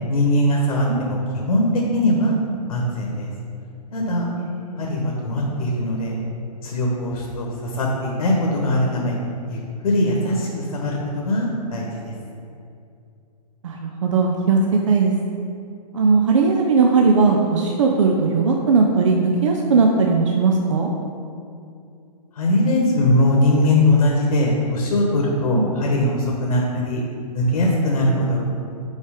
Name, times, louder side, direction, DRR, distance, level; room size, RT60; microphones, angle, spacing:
voice 1, 0.1-2.3 2.7-3.3 3.9-4.3 4.8-6.2 6.6-9.2 9.4-12.1 22.3-27.0 27.3-28.4, left 1 dB, 65° left, -2 dB, 1.3 m, -21 dB
voice 2, 4.4-4.9 10.3-10.4 13.6-14.6 14.9-15.1 15.9-20.9 25.5-25.7, right 4 dB, 50° right, 1 dB, 0.5 m, -18 dB
5.5 x 4.8 x 4.9 m, 2.5 s
hypercardioid pair, 170°, 21 cm